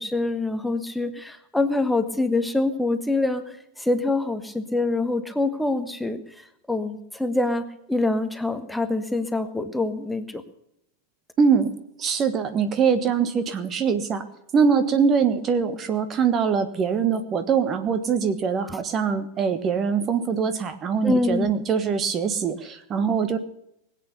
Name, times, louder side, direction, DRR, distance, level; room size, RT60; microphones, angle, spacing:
voice 1, 0.0-6.2 6.7-10.4 21.0-21.5, left 2 dB, 5° left, 9 dB, 1.3 m, -25 dB
voice 2, 11.4-11.7 12.0-14.2 14.5-23.4, right 6 dB, 25° right, 10 dB, 1.3 m, -23 dB
21.0 x 8.6 x 6.9 m, 0.79 s
figure-of-eight pair, 90°, 0 cm